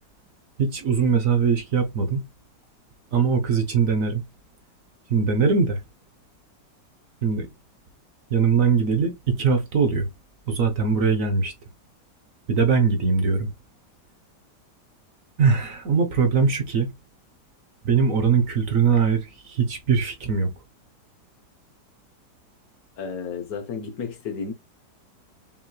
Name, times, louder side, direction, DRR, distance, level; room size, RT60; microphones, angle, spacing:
voice 1, 0.6-2.3 3.1-4.2 5.1-5.8 7.2-7.5 8.3-10.1 10.5-11.5 12.5-13.5 15.4-16.9 17.8-20.5, right 5 dB, 55° right, 1.2 m, -21 dB
voice 2, 23.0-24.5, left 5 dB, 60° left, 1.3 m, -32 dB
5.6 x 3.1 x 2.3 m
omnidirectional pair, 1.9 m